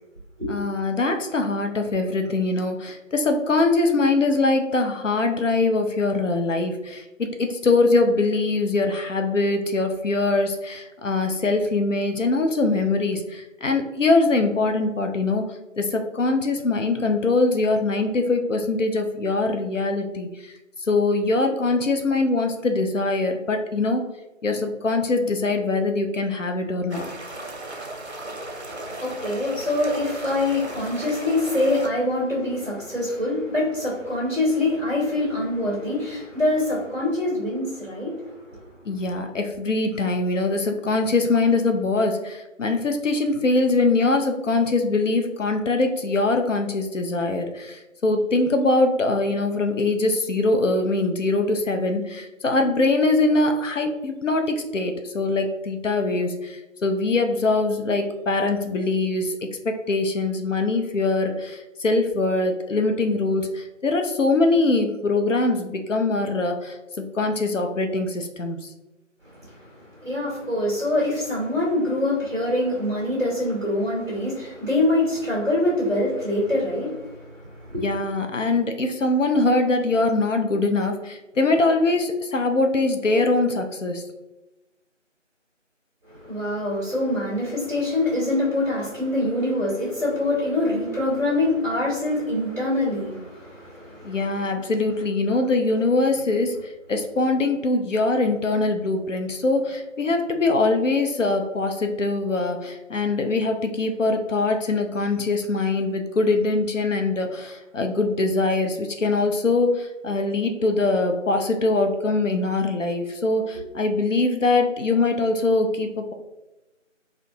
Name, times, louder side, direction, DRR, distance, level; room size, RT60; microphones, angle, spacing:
voice 1, 0.5-15.5 15.8-20.5 20.9-24.0 24.4-27.1 38.9-59.4 59.6-68.6 77.8-84.0 94.0-116.1, left 3 dB, 75° left, 5 dB, 0.6 m, -23 dB
sound 1, 26.9-31.9, right 2 dB, 60° right, 0.8 m, -36 dB
voice 2, 28.5-38.7 69.2-77.8 86.0-94.5, left 1 dB, 15° right, -7 dB, 1.3 m, -25 dB
4.2 x 2.6 x 2.7 m, 1.0 s
figure-of-eight pair, 165°, 38 cm